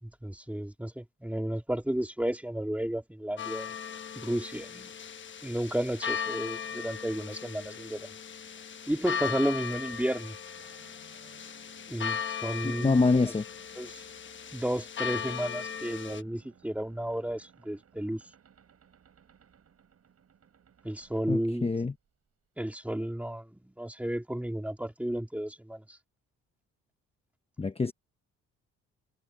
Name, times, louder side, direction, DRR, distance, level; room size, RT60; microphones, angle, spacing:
voice 1, 0.0-3.7 4.2-4.9 5.4-8.1 8.9-10.4 11.9-13.0 13.8-14.0 14.5-18.2 20.8-21.7 22.6-26.0, right 1 dB, 5° right, 2.3 m, -33 dB
sound 1, 3.4-16.2, left 7 dB, 40° left, 1.1 m, -38 dB
sound 2, 7.7-22.3, right 8 dB, 55° right, 7.2 m, -62 dB
voice 2, 12.6-13.4 21.3-21.9 27.6-27.9, left 3 dB, 20° left, 1.0 m, -25 dB
cardioid pair, 90°, 30 cm